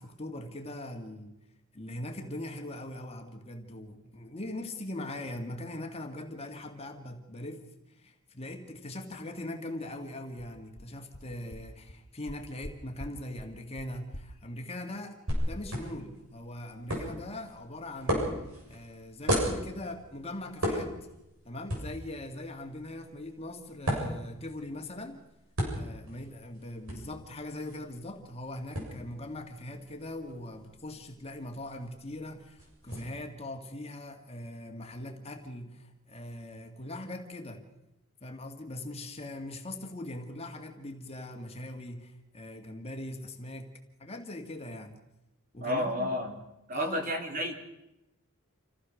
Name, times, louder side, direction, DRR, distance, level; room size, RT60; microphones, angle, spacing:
voice 1, 0.0-1.3 1.7-18.3 18.7-20.9 21.5-25.2 25.7-37.6 38.2-43.7 44.0-45.0 45.5-46.1 46.7-47.0, left 1 dB, 25° left, 3 dB, 2.0 m, -41 dB
sound 1, 10.4-10.5 10.8-10.9 11.1-11.2 11.5-11.6 11.9-12.0 12.3-12.7 13.0-13.1 13.4-13.5 13.8-13.9 14.1-14.2, left 1 dB, 75° left, 1.6 m, -43 dB
sound 2, 15.3-33.0, equal, 75° right, 7.7 m, -37 dB
voice 2, 45.6-46.4 46.7-47.5, equal, 40° right, 3 dB, 3.0 m, -31 dB
27.5 x 16.0 x 6.4 m, 0.90 s
head